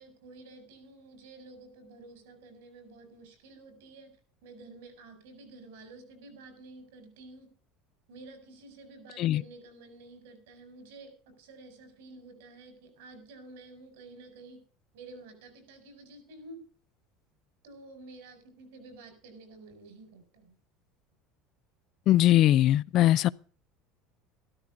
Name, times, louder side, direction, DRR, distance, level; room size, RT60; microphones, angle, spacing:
voice 1, 0.0-4.1 4.4-7.5 8.1-14.6 14.9-16.6 17.6-20.5, right 2 dB, 90° right, 4.9 m, -50 dB
voice 2, 22.1-23.3, left 13 dB, 50° left, 0.4 m, -21 dB
13.0 x 13.0 x 3.6 m
supercardioid pair, 130°, 0 cm